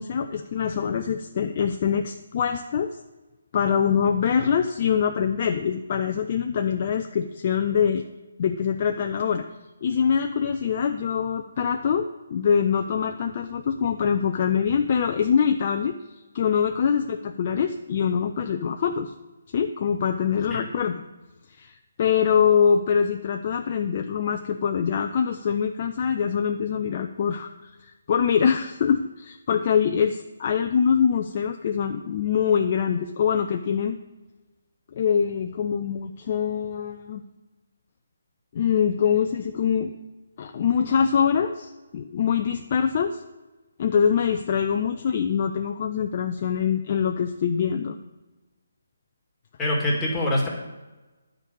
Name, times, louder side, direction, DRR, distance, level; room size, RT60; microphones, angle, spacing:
voice 1, 0.0-2.9 3.5-8.0 8.4-9.4 9.8-12.0 12.3-16.0 16.3-19.1 19.5-21.0 21.5-34.0 34.9-37.2 38.5-39.9 40.4-43.2 43.8-48.0, left 7 dB, 40° left, 5 dB, 0.6 m, -24 dB
voice 2, 49.6-50.5, left 1 dB, 10° left, -4 dB, 2.5 m, -24 dB
9.8 x 5.3 x 8.2 m, 1.1 s
figure-of-eight pair, 150°, 0 cm